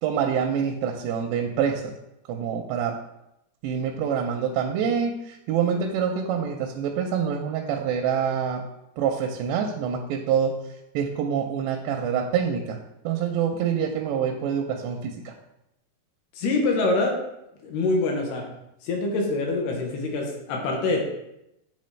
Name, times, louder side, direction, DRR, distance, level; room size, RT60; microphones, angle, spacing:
voice 1, 0.0-1.9 2.3-3.0 3.6-8.6 9.0-10.6 10.9-12.8 13.0-15.3, right 7 dB, 85° right, 2 dB, 2.7 m, -26 dB
voice 2, 16.4-17.2 17.6-18.4 18.8-21.1, left 2 dB, 75° left, 0 dB, 2.9 m, -25 dB
9.2 x 4.0 x 3.2 m, 0.85 s
omnidirectional pair, 4.8 m